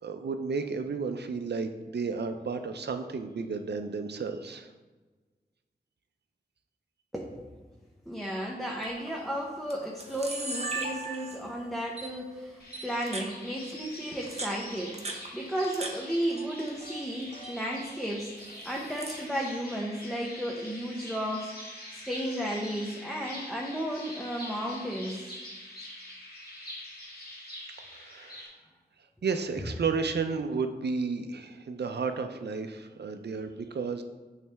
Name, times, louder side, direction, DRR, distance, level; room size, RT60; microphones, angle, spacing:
voice 1, 0.0-4.7 27.8-28.5 29.2-34.0, right 5 dB, 85° right, 8 dB, 0.5 m, -32 dB
voice 2, 7.1-7.5 8.1-18.3 18.6-25.2, equal, ahead, -2 dB, 0.8 m, -34 dB
Camera, 8.8-9.1 9.7-9.8 10.0-11.5 12.0-12.1 12.7-13.3 14.1-15.9 16.2-16.9 17.2-17.6 18.4-19.2, right 3 dB, 40° right, 0.9 m, -37 dB
sound 1, 12.6-28.5, left 1 dB, 65° left, 1.7 m, -45 dB
9.2 x 3.2 x 3.4 m, 1.3 s
wide cardioid pair, 80°, 17 cm